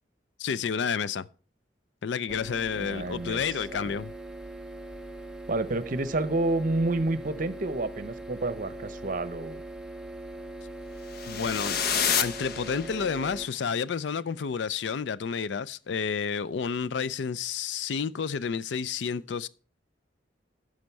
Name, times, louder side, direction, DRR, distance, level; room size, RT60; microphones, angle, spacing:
voice 1, 0.4-1.3 2.0-4.1 11.3-11.8 12.2-19.5, left 6 dB, 75° left, 0.4 m, -30 dB
sound 1, 2.3-13.5, right 1 dB, 5° right, 0.7 m, -41 dB
voice 2, 2.8-3.4 3.7-3.8 5.5-9.6, right 2 dB, 45° right, 0.7 m, -29 dB
sound 2, 11.1-13.3, left 7 dB, 55° left, 0.9 m, -29 dB
11.5 x 6.4 x 4.6 m
head